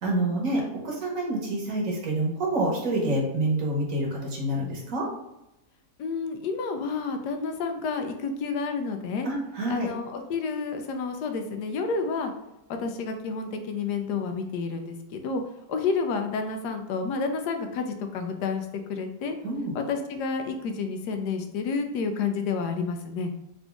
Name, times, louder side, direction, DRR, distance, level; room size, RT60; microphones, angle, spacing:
voice 1, 0.0-5.1 9.2-9.9 19.4-19.7, right 1 dB, 60° right, -1 dB, 1.3 m, -27 dB
voice 2, 6.0-9.3 9.7-12.3 12.8-15.4 15.7-19.4 19.7-23.3, left 4 dB, 90° left, 6 dB, 1.2 m, -30 dB
4.0 x 2.6 x 3.4 m, 0.87 s
omnidirectional pair, 1.7 m